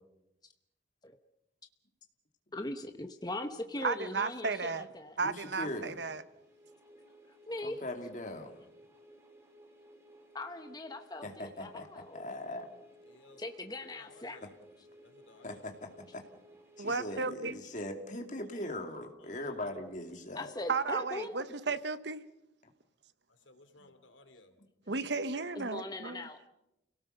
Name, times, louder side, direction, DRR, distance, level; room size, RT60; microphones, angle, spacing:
voice 1, 2.5-5.2 7.5-7.8 10.3-12.2 13.4-14.4 18.7-18.8 20.3-21.3 21.7-21.8 25.6-26.5, left 2 dB, 20° left, 0.9 m, -40 dB
voice 2, 3.8-4.9 5.2-6.2 16.8-17.6 20.7-22.2 24.9-26.2, right 4 dB, 65° right, 1.0 m, -34 dB
voice 3, 5.2-6.0 7.6-8.5 11.2-11.9 12.1-12.7 15.4-16.2 16.8-20.5 23.8-23.9, left 1 dB, 40° left, 2.6 m, -40 dB
sound 1, 6.1-17.9, right 1 dB, 15° right, 3.6 m, -59 dB
voice 4, 13.1-13.4 13.8-14.5 15.0-16.0 19.2-19.7 23.3-24.5, left 2 dB, 90° left, 2.7 m, -59 dB
29.5 x 18.0 x 6.7 m
head